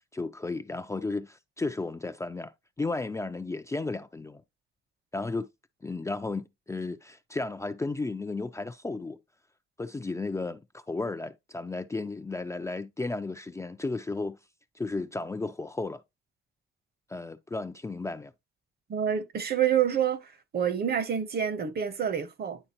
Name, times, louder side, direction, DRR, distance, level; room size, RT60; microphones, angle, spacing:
voice 1, 0.1-4.4 5.1-5.5 5.8-9.2 9.8-14.4 14.8-16.0 17.1-18.3, left 3 dB, 15° left, 0.4 m, -34 dB
voice 2, 18.9-20.2 20.5-22.6, right 8 dB, 50° right, 1.0 m, -27 dB
10.0 x 3.8 x 2.9 m
cardioid pair, 90°, 20 cm